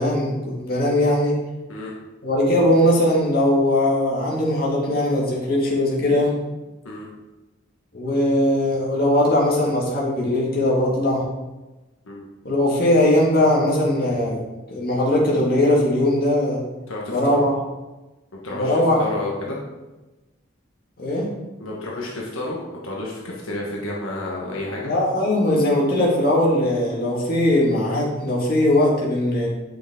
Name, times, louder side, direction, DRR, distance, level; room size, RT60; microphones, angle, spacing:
voice 1, 0.0-1.4 2.2-6.4 7.9-11.3 12.4-14.4 14.7-16.6 17.1-17.6 18.5-19.1 21.0-21.3 24.8-29.5, left 1 dB, 45° left, -5 dB, 2.0 m, -20 dB
voice 2, 16.9-17.4 18.4-19.6 21.6-24.9, left 2 dB, 80° left, -3 dB, 1.4 m, -31 dB
8.1 x 6.2 x 3.7 m, 1.1 s
head